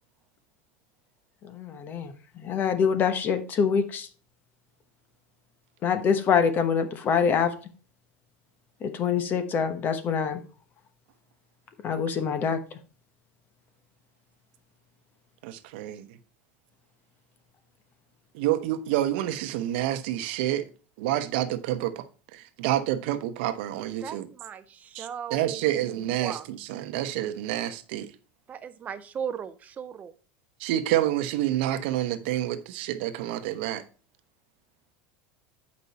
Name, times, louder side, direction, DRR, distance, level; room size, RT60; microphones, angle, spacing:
voice 1, 1.5-4.1 5.8-7.5 8.8-10.4 11.8-12.6, left 6 dB, 30° left, 1.1 m, -25 dB
voice 2, 15.4-16.1 18.3-20.6 21.0-22.0 22.3-24.3 24.9-28.1 30.6-33.8, right 13 dB, 75° right, 0.9 m, -28 dB
voice 3, 24.0-25.9 26.2-26.5 28.5-30.1, right 8 dB, 25° right, 0.7 m, -37 dB
8.3 x 5.3 x 4.1 m
supercardioid pair, 145°, 6 cm